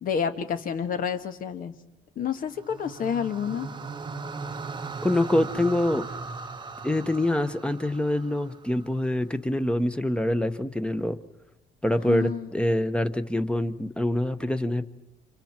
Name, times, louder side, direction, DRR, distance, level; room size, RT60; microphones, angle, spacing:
voice 1, 0.0-1.7 2.1-3.7 12.0-12.6, left 7 dB, 55° left, 9 dB, 1.7 m, -29 dB
sound 1, 2.5-8.9, right 4 dB, 25° right, 1.1 m, -38 dB
voice 2, 5.0-6.2 6.8-11.2 11.8-14.8, left 1 dB, 5° left, 11 dB, 1.1 m, -25 dB
30.0 x 26.5 x 4.5 m, 0.90 s
cardioid pair, 110°, 17 cm